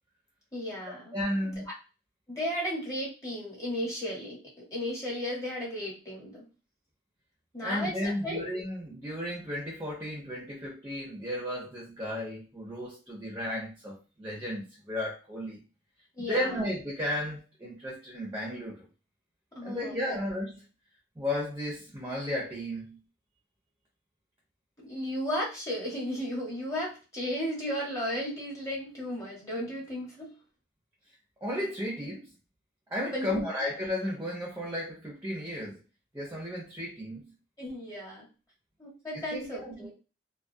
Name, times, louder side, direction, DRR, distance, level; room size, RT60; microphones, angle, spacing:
voice 1, 0.5-1.5 2.3-6.4 7.5-8.4 16.2-16.5 19.5-20.2 24.8-30.3 33.1-33.4 37.6-38.3 38.8-39.9, equal, 20° left, -4 dB, 1.0 m, -35 dB
voice 2, 1.1-1.6 7.6-15.6 16.2-18.9 19.6-20.7 21.2-23.0 31.4-32.3 32.9-35.8 36.1-37.3 39.1-39.9, left 1 dB, 15° right, -3 dB, 0.6 m, -34 dB
2.3 x 2.2 x 2.5 m, 0.31 s
head